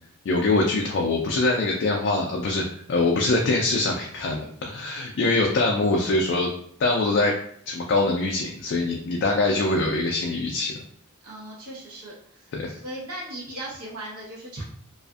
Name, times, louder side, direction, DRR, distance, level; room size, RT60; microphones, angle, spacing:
voice 1, 0.3-6.5 6.8-7.4 7.7-10.7 12.5-12.7, left 2 dB, 55° left, 0 dB, 0.3 m, -23 dB
voice 2, 11.2-14.6, right 1 dB, 90° right, -4 dB, 1.0 m, -38 dB
2.5 x 2.4 x 2.3 m, 0.64 s
head